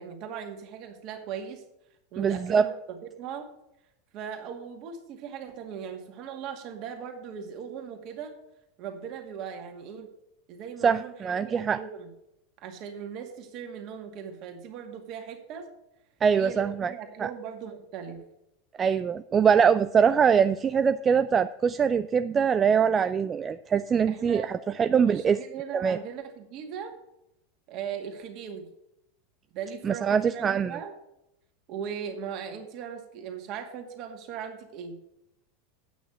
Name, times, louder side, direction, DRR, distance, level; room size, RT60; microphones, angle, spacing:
voice 1, 0.0-1.6 2.1-3.5 4.1-8.4 8.8-10.1 10.5-12.1 12.6-15.7 16.4-18.3 24.1-26.9 27.7-28.7 29.5-30.9 31.7-35.0, right 7 dB, 50° right, 4 dB, 2.1 m, -39 dB
voice 2, 2.2-2.7 10.8-11.8 16.2-16.9 17.2-17.3 18.8-25.4 25.7-26.0 29.8-30.8, right 7 dB, 25° right, 12 dB, 0.4 m, -23 dB
9.3 x 6.2 x 7.6 m, 0.84 s
hypercardioid pair, 95°, 0 cm